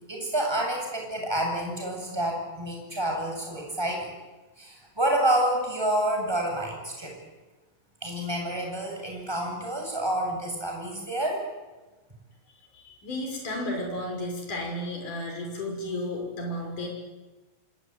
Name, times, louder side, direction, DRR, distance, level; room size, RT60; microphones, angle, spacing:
voice 1, 0.1-4.1 4.6-7.1 8.0-11.4, right 1 dB, 5° right, 0 dB, 7.8 m, -28 dB
voice 2, 12.7-16.9, left 1 dB, 85° left, 1 dB, 7.7 m, -33 dB
26.5 x 23.0 x 9.8 m, 1.2 s
omnidirectional pair, 3.5 m